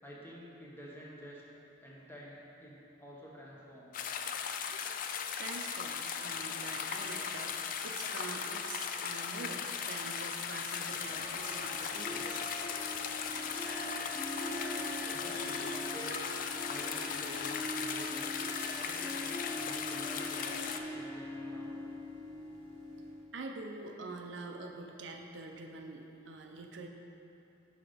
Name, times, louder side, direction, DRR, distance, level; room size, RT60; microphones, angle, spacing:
voice 1, 0.0-1.4 1.8-4.1 15.0-16.3 16.7-18.3 18.7-21.7, equal, 10° left, -4 dB, 0.9 m, -49 dB
sound 1, 3.9-20.8, left 7 dB, 45° left, 0.3 m, -38 dB
voice 2, 5.3-7.6 7.8-12.4 23.3-26.9, right 3 dB, 70° right, 2 dB, 0.6 m, -45 dB
Harp, 11.0-23.2, left 1 dB, 30° left, 1.5 m, -42 dB
5.9 x 5.0 x 5.0 m, 2.8 s
head